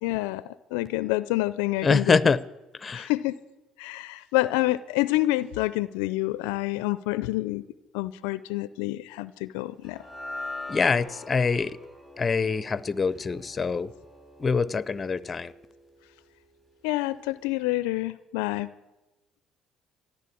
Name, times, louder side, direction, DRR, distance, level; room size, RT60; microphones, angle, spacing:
voice 1, 0.0-2.3 2.9-3.4 3.8-7.6 7.9-10.0 16.8-18.7, left 18 dB, 80° left, 0.5 m, -28 dB
voice 2, 1.8-2.4 2.8-3.1 10.7-11.7 12.2-13.9 14.4-15.5, left 5 dB, 30° left, 0.7 m, -24 dB
sound 1, 9.8-16.2, left 2 dB, 10° right, 6.7 m, -43 dB
14.5 x 11.5 x 8.4 m
hypercardioid pair, 65°, 0 cm